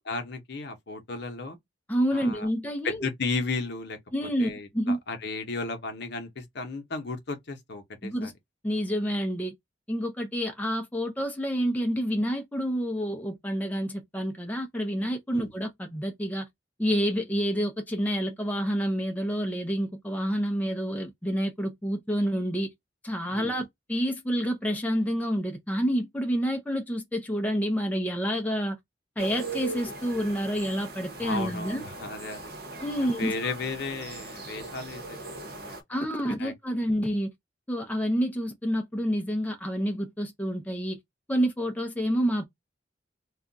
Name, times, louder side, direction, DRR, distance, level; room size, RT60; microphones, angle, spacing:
voice 1, 0.1-1.6 2.1-2.5 2.8-4.0 4.4-8.3 15.3-15.5 23.3-23.6 31.2-32.5 33.0-35.8 36.2-36.5, left 3 dB, 60° left, 0.8 m, -34 dB
voice 2, 1.9-3.0 4.1-5.0 8.0-8.3 8.6-9.5 9.9-16.5 16.8-22.7 23.0-28.8 29.2-31.8 32.8-33.5 35.9-37.3 37.7-41.0 41.3-42.4, equal, 10° left, 0.5 m, -28 dB
sound 1, 29.2-35.8, right 3 dB, 55° right, 0.9 m, -39 dB
2.4 x 2.2 x 3.8 m
head